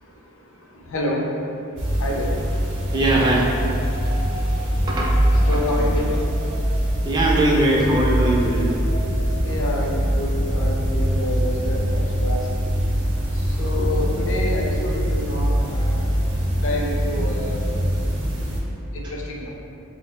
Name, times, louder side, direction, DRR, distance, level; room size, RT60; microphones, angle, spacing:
voice 1, 0.9-1.3 2.0-2.3 5.3-6.2 9.4-12.4 13.6-16.0 16.6-17.6 18.9-19.5, left 1 dB, 65° left, -1 dB, 0.5 m, -28 dB
sound 1, 1.8-18.6, equal, 55° right, 0.7 m, -23 dB
sound 2, 2.9-10.2, equal, 5° right, 1.1 m, -40 dB
voice 2, 2.9-3.5 4.9-5.9 7.0-8.7 19.0-19.1, right 1 dB, 20° right, -4 dB, 0.4 m, -21 dB
6.1 x 2.0 x 2.2 m, 2.7 s
head